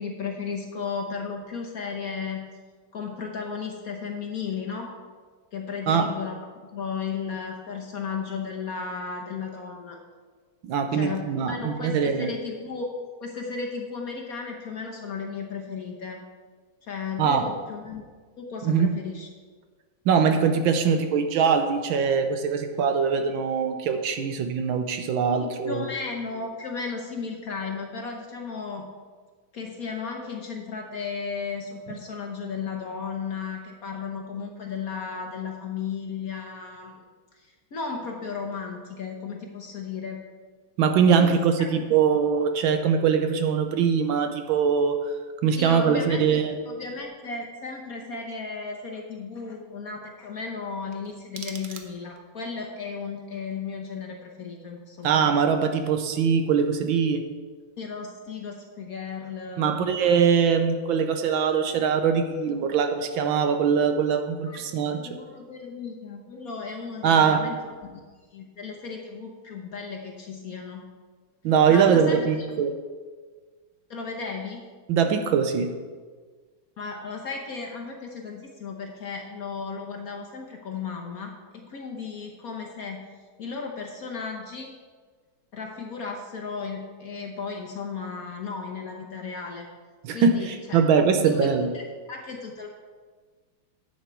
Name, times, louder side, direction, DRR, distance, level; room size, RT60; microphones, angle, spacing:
voice 1, 0.0-2.5 2.9-4.9 5.5-6.4 6.7-10.0 10.9-12.9 13.2-16.2 16.9-18.0 18.4-19.3 25.3-28.9 29.5-37.0 37.3-40.2 41.1-41.4 45.6-55.3 57.8-59.9 64.5-67.6 68.3-70.9 71.7-72.5 73.9-74.7 76.8-83.1 83.4-84.7 85.5-89.7 90.1-90.8 91.2-91.5 91.7-91.8 92.1-92.7, left 5 dB, 55° left, 1 dB, 1.2 m, -35 dB
voice 2, 10.7-12.3 17.2-17.5 18.6-18.9 20.1-25.8 40.8-45.0 45.4-46.5 55.0-57.2 59.6-65.0 67.0-67.4 71.4-72.7 74.9-75.7 90.0-91.7, right 6 dB, 75° right, 7 dB, 1.4 m, -22 dB
sound 1, 50.9-52.4, right 6 dB, 60° right, 1.1 m, -43 dB
10.5 x 8.1 x 4.5 m, 1.5 s
omnidirectional pair, 2.3 m